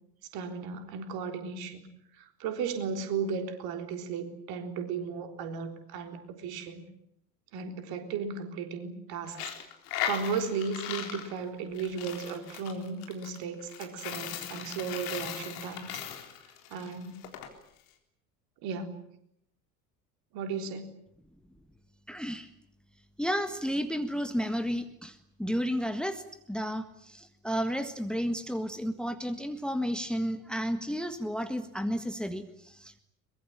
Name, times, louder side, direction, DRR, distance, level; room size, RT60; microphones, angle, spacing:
voice 1, 0.3-1.9 2.1-6.8 7.5-9.5 10.1-16.0 16.7-17.2 18.6-19.1 20.3-20.9, right 5 dB, 50° right, 7 dB, 3.8 m, -35 dB
Coin (dropping), 9.3-17.5, left 10 dB, 60° left, 3.8 m, -38 dB
voice 2, 22.1-22.5 23.2-26.2 26.5-33.0, equal, ahead, 11 dB, 1.6 m, -32 dB
23.5 x 21.5 x 8.8 m, 0.74 s
figure-of-eight pair, 70°, 46 cm